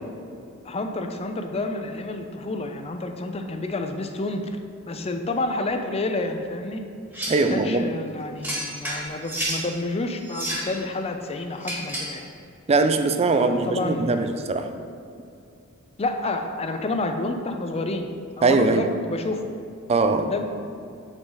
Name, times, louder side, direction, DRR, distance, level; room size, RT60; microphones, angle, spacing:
voice 1, 0.6-4.5 4.9-6.8 7.5-12.3 13.3-14.3 16.0-18.1 18.4-19.5 20.1-20.4, left 2 dB, 30° left, 6 dB, 0.5 m, -29 dB
sound 1, 7.1-7.5 8.4-9.6 10.2-10.7 11.6-12.2, right 1 dB, 10° right, 1.5 m, -30 dB
voice 2, 7.3-7.9 12.7-14.8 18.4-18.9 19.9-20.4, right 3 dB, 30° right, 8 dB, 0.4 m, -21 dB
8.8 x 3.9 x 3.9 m, 2.6 s
head